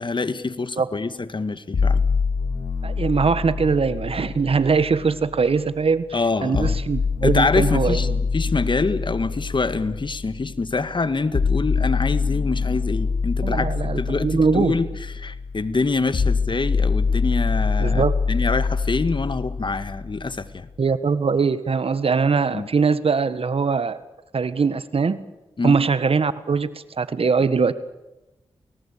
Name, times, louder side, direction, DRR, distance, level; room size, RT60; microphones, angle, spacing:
voice 1, 0.0-2.0 6.1-6.8 7.2-14.9 15.2-20.7 22.5-22.7 25.6-25.8, left 3 dB, 50° left, 13 dB, 1.9 m, -25 dB
sound 1, 1.7-5.7 6.5-20.6, left 5 dB, 70° left, 2.5 m, -25 dB
voice 2, 2.8-8.2 13.4-14.7 17.8-18.1 20.8-24.0 24.3-25.2 25.6-27.7, right 5 dB, 65° right, 14 dB, 1.6 m, -21 dB
29.5 x 19.5 x 8.7 m, 0.99 s
cardioid pair, 45°, 11 cm